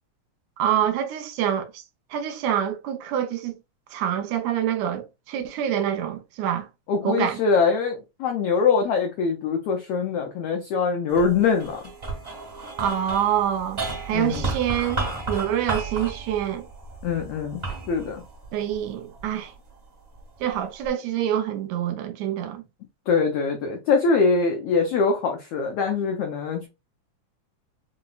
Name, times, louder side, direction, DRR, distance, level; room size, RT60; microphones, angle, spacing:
voice 1, 0.6-1.8 2.1-3.6 3.9-6.7 7.1-7.4 12.8-16.7 18.5-19.5 20.4-22.6, right 10 dB, 80° right, 1.7 m, -26 dB
voice 2, 6.9-11.8 14.1-14.5 17.0-17.6 17.9-18.2 23.1-26.7, left 5 dB, 85° left, 1.3 m, -23 dB
sound 1, 11.1-19.6 20.1-20.9, right 3 dB, 30° right, 0.8 m, -33 dB
5.1 x 2.0 x 2.3 m
omnidirectional pair, 3.4 m